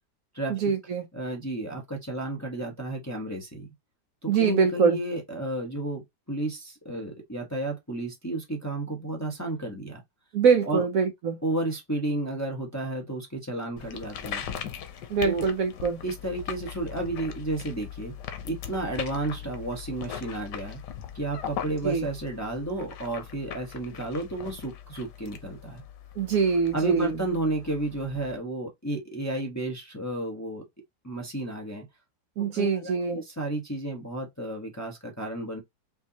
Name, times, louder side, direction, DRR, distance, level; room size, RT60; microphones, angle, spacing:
voice 1, 0.5-1.1 4.3-5.0 10.3-11.4 15.1-16.0 21.8-22.1 26.2-27.2 32.4-33.2, right 6 dB, 65° right, 1.0 m, -24 dB
voice 2, 1.1-3.7 4.2-10.0 10.7-10.9 11.4-14.4 15.2-15.4 16.0-18.1 18.4-20.8 21.1-25.8 26.7-30.6 31.0-31.8 32.4-35.6, right 2 dB, 15° left, 0.9 m, -32 dB
sound 1, 13.8-28.4, left 9 dB, 90° left, 1.4 m, -40 dB
5.6 x 2.7 x 2.8 m
omnidirectional pair, 1.8 m